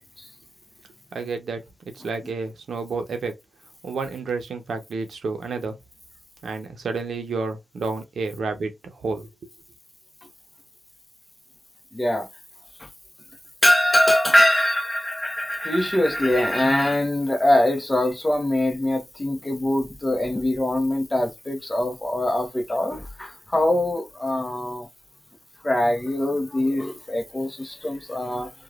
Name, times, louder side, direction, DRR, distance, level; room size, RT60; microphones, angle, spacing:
voice 1, 1.1-1.6 2.0-3.3 3.8-5.8 6.4-9.3, right 4 dB, 75° right, 0.8 m, -30 dB
voice 2, 11.9-12.3 12.8-12.9 13.6-24.9 25.6-28.5, left 1 dB, 20° left, 0.9 m, -23 dB
3.0 x 2.4 x 2.4 m
cardioid pair, 55°, 0 cm